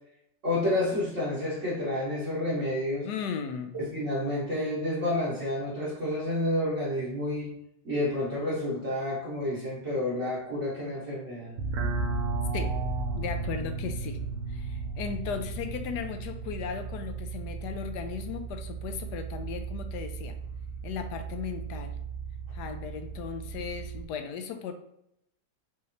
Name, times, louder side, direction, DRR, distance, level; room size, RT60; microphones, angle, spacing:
voice 1, 0.4-3.1 3.7-7.5 7.8-11.5, left 1 dB, 45° right, -8 dB, 1.3 m, -30 dB
voice 2, 3.0-3.8 12.5-12.7 13.1-14.2 14.5-20.3 20.8-21.9 22.5-24.7, left 6 dB, 70° left, 7 dB, 1.0 m, -36 dB
sound 1, 11.6-24.0, right 4 dB, 85° right, 0.6 m, -35 dB
5.4 x 3.2 x 2.8 m, 0.78 s
omnidirectional pair, 2.1 m